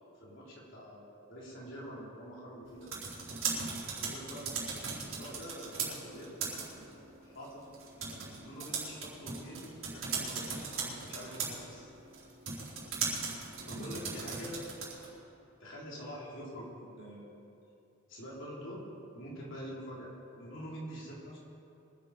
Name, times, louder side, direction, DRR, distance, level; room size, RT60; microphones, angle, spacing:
voice 1, 0.2-2.9 3.2-3.4 4.0-7.6 8.1-11.9 13.7-14.7 15.6-17.4 18.1-18.8 19.1-21.4, equal, 65° left, -5 dB, 4.0 m, -46 dB
sound 1, 2.7-15.2, right 5 dB, 70° right, 4.2 m, -39 dB
24.0 x 8.4 x 5.1 m, 2.8 s
head